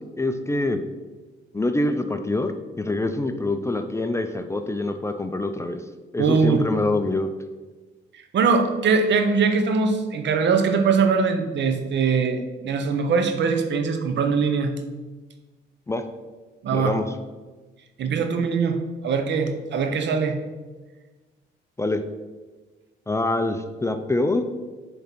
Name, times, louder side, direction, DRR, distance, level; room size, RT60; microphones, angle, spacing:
voice 1, 0.2-0.8 1.5-2.5 2.8-5.8 6.1-7.3 15.9-16.0 16.7-17.1 21.8-22.0 23.1-24.4, left 2 dB, 15° left, 8 dB, 0.5 m, -25 dB
voice 2, 6.2-6.7 8.1-14.7 16.6-17.0 18.0-18.8 19.0-20.4, right 5 dB, 65° right, 7 dB, 0.9 m, -22 dB
6.9 x 3.8 x 5.9 m, 1.3 s
cardioid pair, 90°, 20 cm